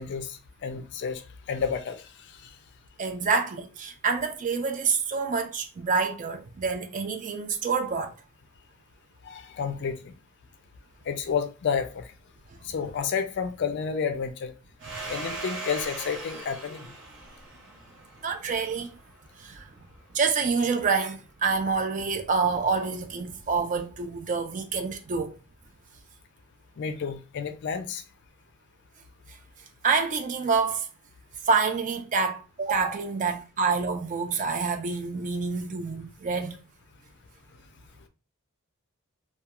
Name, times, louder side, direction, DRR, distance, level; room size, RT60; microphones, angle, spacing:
voice 1, 0.0-2.5 9.2-10.1 11.1-12.1 12.6-14.5 15.1-16.9 26.8-28.0, left 6 dB, 50° left, 0.3 m, -31 dB
voice 2, 3.0-8.1 15.0-15.1 18.2-18.9 19.4-19.7 20.1-25.3 29.8-30.9 31.5-36.6, right 5 dB, 35° right, 0.3 m, -27 dB
Domestic sounds home sounds, 14.8-19.2, right 2 dB, 55° right, 0.9 m, -39 dB
2.3 x 2.2 x 2.8 m
head